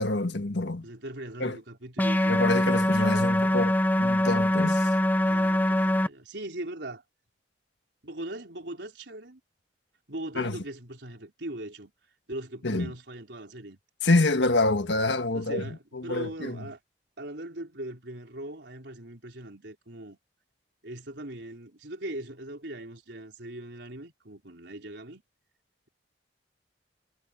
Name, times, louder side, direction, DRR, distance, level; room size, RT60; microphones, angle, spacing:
voice 1, 0.0-0.9 1.4-1.6 2.3-4.9 10.4-10.6 12.6-12.9 14.0-15.6 15.9-16.6, left 2 dB, 75° left, 1.6 m, -26 dB
voice 2, 0.8-2.4 5.2-7.0 8.0-9.4 10.1-11.9 12.3-13.8 15.3-16.8 17.2-20.2 20.8-25.2, right 1 dB, 70° right, 4.3 m, -40 dB
sound 1, 2.0-6.1, left 1 dB, 10° left, 0.6 m, -23 dB
head